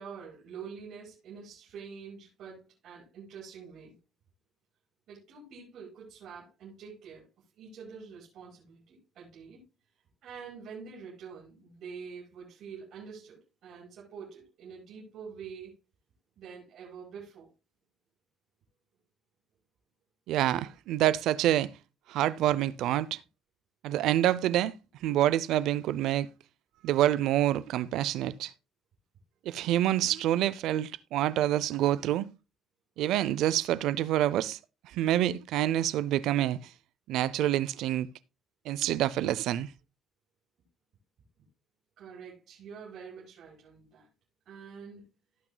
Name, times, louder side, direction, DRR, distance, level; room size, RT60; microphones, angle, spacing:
voice 1, 0.0-4.0 5.1-9.6 10.2-15.7 16.4-17.5 42.0-44.1 44.5-45.0, right 6 dB, 55° right, 5.4 m, -46 dB
voice 2, 20.3-21.7 22.1-23.2 23.8-24.7 25.0-26.3 26.8-28.5 29.5-32.3 33.0-34.6 34.9-36.6 37.1-38.1 38.7-39.7, right 13 dB, 75° right, 0.5 m, -27 dB
18.0 x 6.1 x 2.2 m
cardioid pair, 170°, 0 cm